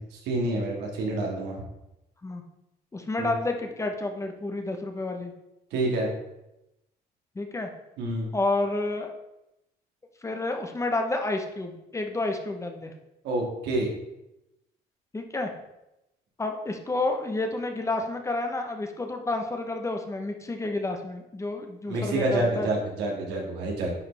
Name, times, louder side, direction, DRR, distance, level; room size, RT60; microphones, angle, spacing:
voice 1, 0.0-1.6 3.2-3.3 5.7-6.1 8.0-8.3 13.2-13.9 21.9-23.9, right 2 dB, 85° right, -1 dB, 2.1 m, -28 dB
voice 2, 2.9-5.3 7.4-7.7 8.3-9.1 10.2-12.9 15.1-15.5 16.4-22.7, left 2 dB, 15° left, 5 dB, 0.9 m, -30 dB
9.6 x 4.9 x 3.4 m, 0.90 s
cardioid pair, 110°, 17 cm